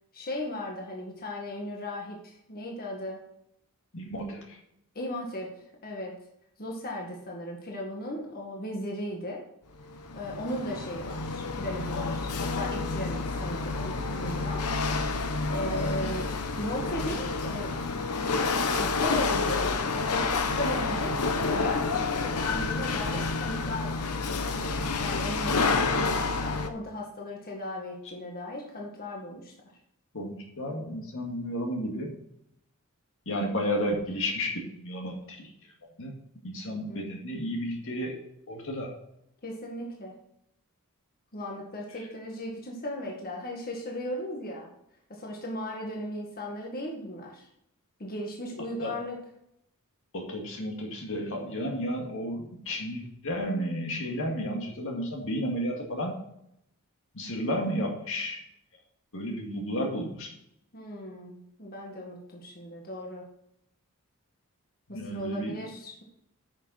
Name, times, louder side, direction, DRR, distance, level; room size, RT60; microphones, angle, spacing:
voice 1, 0.1-3.2 5.0-5.5 5.8-6.2 6.6-9.4 10.1-14.6 15.5-17.8 18.7-24.4 25.0-29.5 36.7-37.1 39.4-40.1 41.3-44.7 45.1-47.5 48.0-49.2 60.7-63.3 64.9-66.0, left 1 dB, 45° left, -1 dB, 1.9 m, -37 dB
voice 2, 3.9-4.6 30.1-32.1 33.3-35.5 36.0-36.1 36.4-38.2 38.5-38.9 41.9-42.1 48.8-48.9 50.1-56.1 57.1-58.4 59.1-60.3 64.9-65.7, equal, 65° left, 1 dB, 2.1 m, -32 dB
Chatter / Hiss / Rattle, 9.8-26.7, left 4 dB, 85° left, 0.9 m, -29 dB
9.8 x 6.5 x 4.3 m, 0.76 s
head